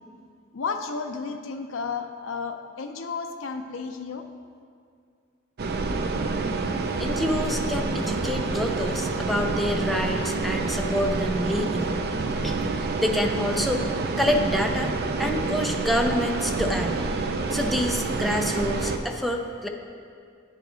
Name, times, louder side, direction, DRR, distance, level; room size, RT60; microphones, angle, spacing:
voice 1, 0.5-4.2, left 5 dB, 70° left, 5 dB, 0.5 m, -32 dB
sound 1, 5.6-19.0, right 3 dB, 50° right, 0.5 m, -28 dB
voice 2, 7.0-11.9 12.4-14.9 15.2-17.1 17.5-19.7, left 1 dB, ahead, 2 dB, 0.5 m, -27 dB
8.9 x 4.9 x 5.0 m, 2.3 s
head